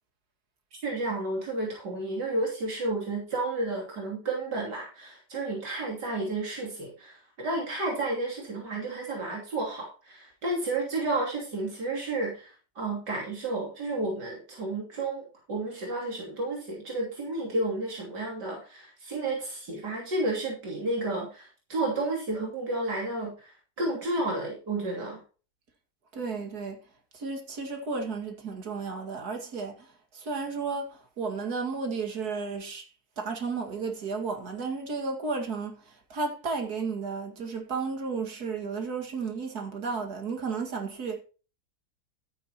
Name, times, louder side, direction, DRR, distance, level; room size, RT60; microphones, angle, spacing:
voice 1, 0.8-25.2, right 2 dB, 85° right, 3.6 m, -31 dB
voice 2, 26.1-26.8 27.1-29.9 30.1-32.9 33.2-35.8 36.1-41.2, right 4 dB, 65° right, 2.6 m, -33 dB
12.5 x 9.9 x 2.9 m
omnidirectional pair, 1.8 m